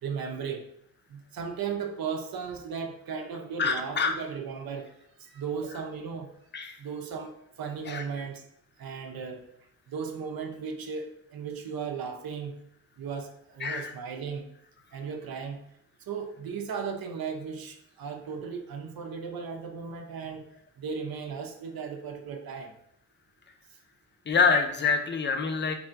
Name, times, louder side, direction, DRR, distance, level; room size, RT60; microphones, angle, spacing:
voice 1, 0.0-0.6 1.1-4.9 5.2-6.3 6.8-8.4 8.8-9.5 9.9-12.5 13.0-14.5 14.9-15.6 16.1-20.4 20.8-22.7, right 6 dB, 80° right, 4 dB, 0.6 m, -36 dB
voice 2, 3.6-4.1 6.5-6.8 7.9-8.0 13.6-13.9 24.3-25.7, left 5 dB, 30° left, 6 dB, 0.5 m, -26 dB
3.4 x 2.5 x 4.4 m, 0.74 s
wide cardioid pair, 100°, 36 cm